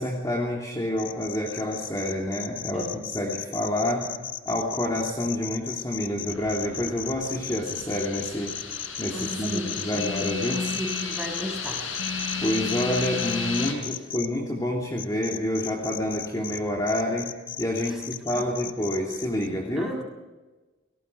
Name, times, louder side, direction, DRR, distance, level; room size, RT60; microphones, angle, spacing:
voice 1, 0.0-4.1 4.4-8.5 9.0-10.6 12.4-19.9, left 1 dB, 20° left, -2 dB, 3.0 m, -28 dB
sound 1, 1.0-14.3 15.0-16.6 16.9-19.5, left 10 dB, 45° left, 1.5 m, -35 dB
sound 2, 6.3-13.7, left 5 dB, 85° left, 5.9 m, -33 dB
voice 2, 9.1-10.1 10.5-11.9 17.9-18.5 19.8-20.0, equal, 5° right, 1 dB, 6.5 m, -35 dB
30.0 x 19.0 x 4.8 m, 1.2 s
head